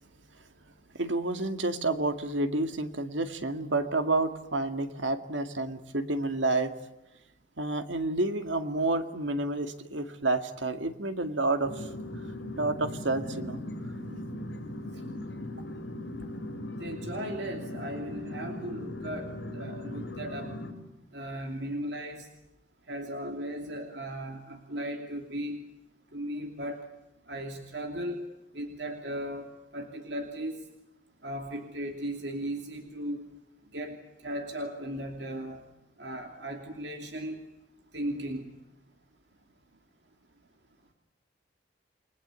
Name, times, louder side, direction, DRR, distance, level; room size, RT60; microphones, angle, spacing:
voice 1, 0.9-6.7 7.6-11.9 12.6-13.6, right 2 dB, 85° right, 8 dB, 2.1 m, -29 dB
sound 1, 11.6-20.7, left 1 dB, 65° left, 5.7 m, -38 dB
voice 2, 16.8-20.5 21.1-22.3 22.9-25.6 26.1-26.8 27.3-28.2 28.5-29.4 29.7-30.5 31.2-33.3 33.7-34.0 34.2-35.6 36.0-37.4 37.9-38.5, right 1 dB, 65° right, 4 dB, 2.9 m, -36 dB
29.5 x 21.5 x 8.3 m, 0.95 s
head